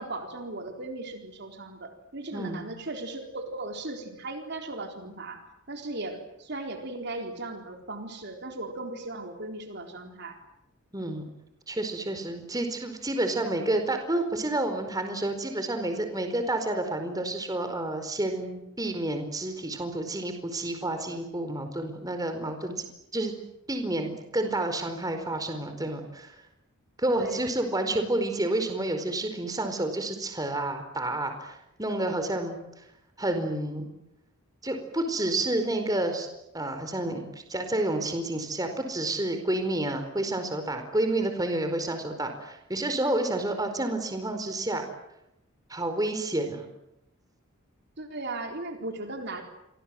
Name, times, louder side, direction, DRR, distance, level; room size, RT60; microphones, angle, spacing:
voice 1, 0.0-5.4 5.7-10.4 27.1-27.4 48.0-49.4, right 2 dB, 50° right, 4 dB, 4.0 m, -37 dB
voice 2, 2.3-2.7 10.9-11.2 11.7-22.9 23.1-23.3 23.7-26.3 27.0-32.6 33.2-33.9 34.6-36.3 36.5-37.2 37.5-44.8 45.7-46.6, right 1 dB, 15° right, 6 dB, 4.6 m, -29 dB
30.0 x 25.0 x 7.8 m, 0.84 s
head